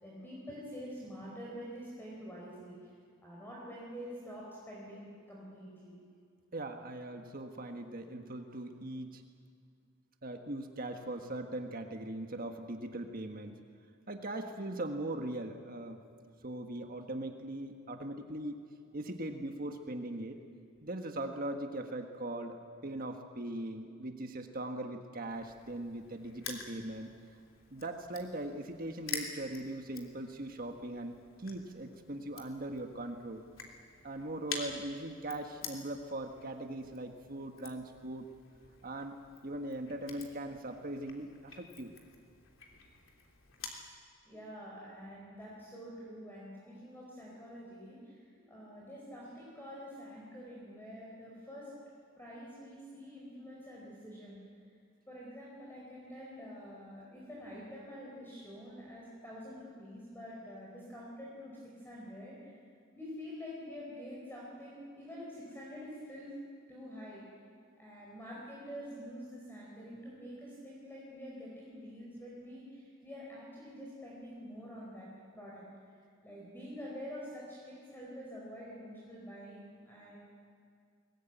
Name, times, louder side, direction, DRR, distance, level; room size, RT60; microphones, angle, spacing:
voice 1, 0.0-2.9 3.2-6.0 44.2-51.7 52.2-54.4 55.1-62.6 62.9-66.4 66.7-67.2 67.8-75.1 75.3-75.6 76.2-80.2, equal, 10° left, -5 dB, 4.7 m, -47 dB
voice 2, 6.5-9.2 10.2-13.6 14.1-16.0 16.4-18.6 18.9-20.4 20.8-27.1 27.7-33.4 34.0-38.3 38.8-41.9, right 1 dB, 45° right, 5 dB, 1.5 m, -40 dB
Crushing, 25.3-43.9, left 5 dB, 75° left, 3.2 m, -48 dB
22.5 x 19.5 x 9.2 m, 2.3 s
head